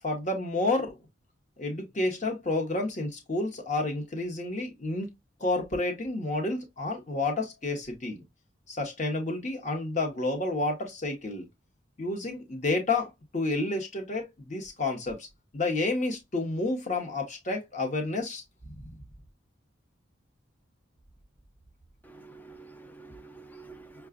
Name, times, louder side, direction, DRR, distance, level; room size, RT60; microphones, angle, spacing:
voice 1, 0.0-0.9 1.6-5.1 5.4-8.2 8.7-11.5 12.0-15.3 15.5-18.4 18.7-18.9, left 2 dB, 40° left, 0.9 m, -30 dB
voice 2, 22.0-24.1, right 3 dB, 10° left, 0.4 m, -48 dB
5.7 x 2.3 x 2.3 m
head